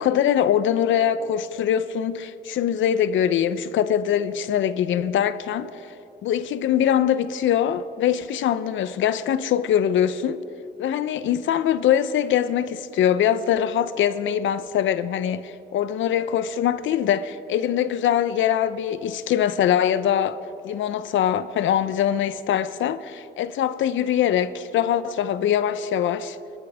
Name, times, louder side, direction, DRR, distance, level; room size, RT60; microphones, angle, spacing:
voice 1, 0.0-5.8 6.2-10.4 10.8-20.4 20.6-26.4, left 9 dB, 75° left, 0.8 m, -23 dB
28.5 x 13.0 x 3.6 m
cardioid pair, 90°, 20 cm